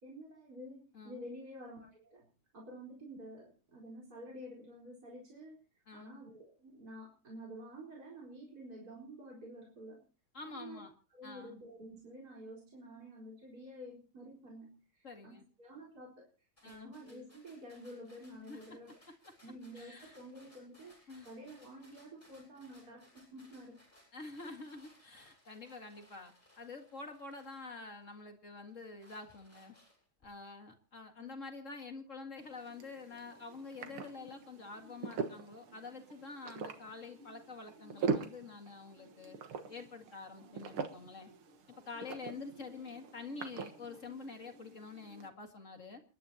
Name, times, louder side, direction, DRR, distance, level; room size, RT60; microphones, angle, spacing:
voice 1, 0.0-2.3 2.5-5.6 5.9-10.0 10.4-10.8 11.1-16.3 16.6-19.0 19.4-23.8 31.2-31.4, equal, 45° right, -3 dB, 4.9 m, -50 dB
voice 2, 0.9-1.3 5.9-6.2 10.3-10.9 11.2-11.6 15.0-15.4 16.6-16.9 18.5-18.8 19.7-20.2 21.1-21.3 24.1-29.7 30.2-39.4 39.7-41.3 41.9-46.0, left 4 dB, 35° left, 4 dB, 2.3 m, -47 dB
sound 1, 16.6-28.2 28.7-30.2, left 1 dB, 15° left, 7.8 m, -65 dB
sound 2, 32.4-45.3, right 5 dB, 80° right, 2.3 m, -43 dB
29.5 x 11.5 x 2.9 m, 0.35 s
omnidirectional pair, 2.3 m